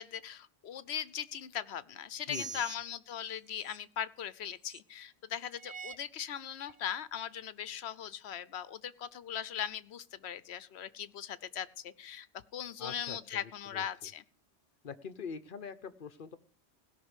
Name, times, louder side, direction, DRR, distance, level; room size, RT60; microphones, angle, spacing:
voice 1, 0.0-12.3 12.5-14.2, left 9 dB, 75° left, 16 dB, 1.0 m, -39 dB
voice 2, 2.3-2.6 12.8-14.1 14.8-16.4, left 6 dB, 50° left, 11 dB, 1.0 m, -44 dB
sound 1, 2.3-2.8 3.6-3.8 4.7-4.8 5.5-6.0 6.7-6.8, right 6 dB, 40° right, 0.8 m, -43 dB
17.0 x 6.0 x 8.2 m, 0.43 s
omnidirectional pair, 1.1 m